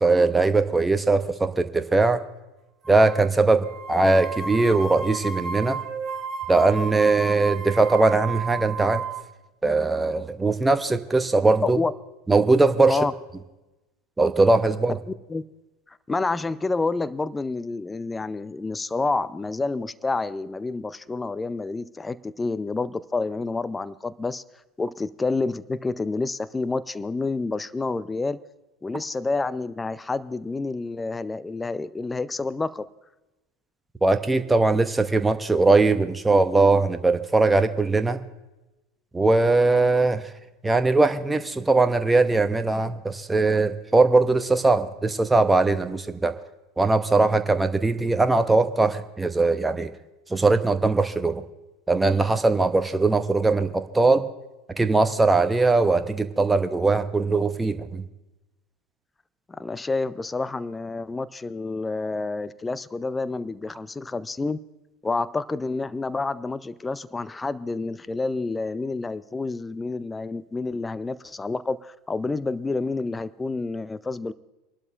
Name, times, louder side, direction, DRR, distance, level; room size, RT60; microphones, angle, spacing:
voice 1, 0.0-2.2 2.9-5.8 6.5-9.0 9.6-11.8 12.3-13.0 14.2-15.0 34.0-38.2 39.1-40.3 40.6-46.4 46.8-49.9 50.3-51.4 51.9-54.3 54.8-58.0, right 3 dB, 10° right, 10 dB, 0.8 m, -20 dB
sound 1, 2.8-3.3 3.6-9.2, right 5 dB, 30° right, 1.5 m, -33 dB
voice 2, 16.1-24.4 24.8-28.4 28.8-32.9 59.5-64.6 65.0-74.3, left 3 dB, 15° left, 17 dB, 0.5 m, -28 dB
27.5 x 12.0 x 2.5 m, 1.0 s
figure-of-eight pair, 75°, 0 cm